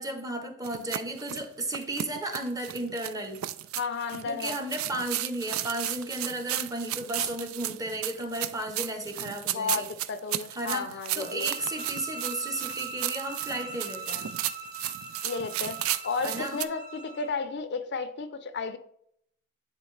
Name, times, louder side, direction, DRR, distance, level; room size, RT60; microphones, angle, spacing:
voice 1, 0.0-3.4 4.3-9.9 10.5-14.3 16.2-16.6, right 1 dB, 15° right, 0.8 m, -34 dB
sound 1, 0.6-16.6, right 13 dB, 80° right, 0.4 m, -34 dB
voice 2, 3.8-4.6 9.5-11.5 15.2-15.8 16.0-18.8, left 4 dB, 55° left, 0.5 m, -33 dB
sound 2, 11.2-17.4, right 3 dB, 40° right, 1.1 m, -41 dB
9.9 x 3.7 x 3.2 m
head